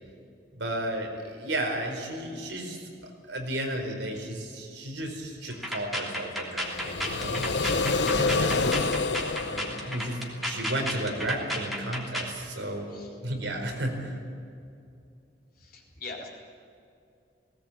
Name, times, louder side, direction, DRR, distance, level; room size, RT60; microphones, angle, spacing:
voice 1, 0.5-7.5 8.0-8.8 9.5-12.9 13.2-14.2, right 1 dB, 85° right, 2 dB, 4.6 m, -33 dB
sound 1, 5.5-12.4, equal, ahead, 3.1 m, -33 dB
sound 2, 6.6-10.6, left 3 dB, 70° left, 1.0 m, -28 dB
voice 2, 15.6-16.3, left 3 dB, 55° left, 0 dB, 4.1 m, -41 dB
18.5 x 18.5 x 8.6 m, 2.5 s
head